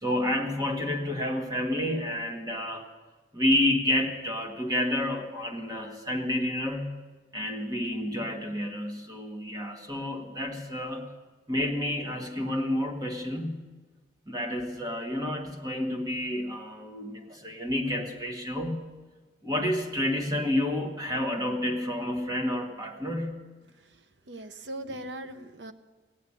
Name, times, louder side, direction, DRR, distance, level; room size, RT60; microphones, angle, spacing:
voice 1, 0.0-2.9 3.3-7.0 7.3-11.1 11.5-13.6 14.3-18.8 19.4-23.4, left 1 dB, 20° right, 3 dB, 1.4 m, -29 dB
voice 2, 23.7-25.7, right 1 dB, 85° right, 10 dB, 0.8 m, -40 dB
16.0 x 8.6 x 9.8 m, 1.3 s
head